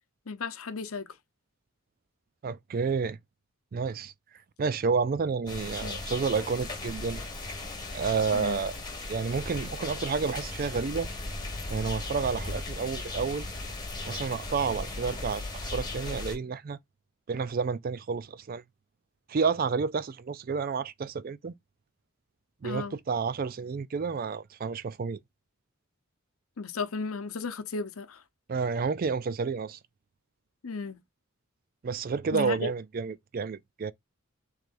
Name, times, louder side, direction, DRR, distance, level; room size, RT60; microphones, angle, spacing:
voice 1, 0.3-1.1 5.8-6.0 8.3-8.6 22.6-23.0 26.6-28.2 30.6-31.0 32.3-32.7, left 4 dB, 80° left, 0.8 m, -35 dB
voice 2, 2.4-3.2 3.7-4.1 4.6-7.2 7.9-8.7 9.1-11.1 11.7-13.5 14.0-16.8 17.3-18.6 19.3-21.5 22.6-25.2 28.5-29.8 31.8-33.9, right 5 dB, 45° right, 0.4 m, -30 dB
sound 1, 5.5-16.4, left 2 dB, 20° left, 1.8 m, -37 dB
6.5 x 3.3 x 2.5 m
head